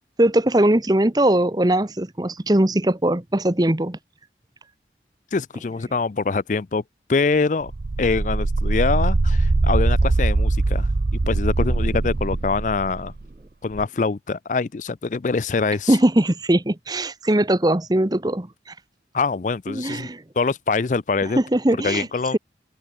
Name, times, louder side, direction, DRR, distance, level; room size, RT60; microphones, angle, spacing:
voice 1, 0.2-4.0 15.9-18.5 19.7-20.2 21.4-22.1, right 1 dB, 20° right, 0.9 m, -20 dB
voice 2, 5.3-6.8 7.1-7.7 8.0-10.9 11.3-13.1 13.6-16.0 19.1-20.1 20.4-21.4 21.7-22.4, left 4 dB, 45° left, 0.4 m, -24 dB
sound 1, 7.7-13.2 13.7-13.8, right 2 dB, 60° right, 0.6 m, -21 dB
head